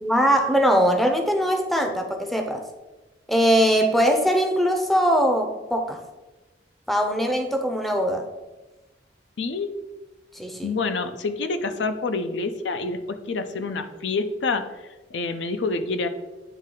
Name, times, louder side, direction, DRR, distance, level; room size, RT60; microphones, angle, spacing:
voice 1, 0.0-2.6 3.3-6.0 6.9-8.2 10.3-10.7, equal, ahead, 4 dB, 0.5 m, -21 dB
voice 2, 9.4-9.7 10.6-14.6 15.1-16.1, left 3 dB, 75° left, 9 dB, 0.5 m, -27 dB
9.2 x 3.2 x 3.7 m, 1.1 s
head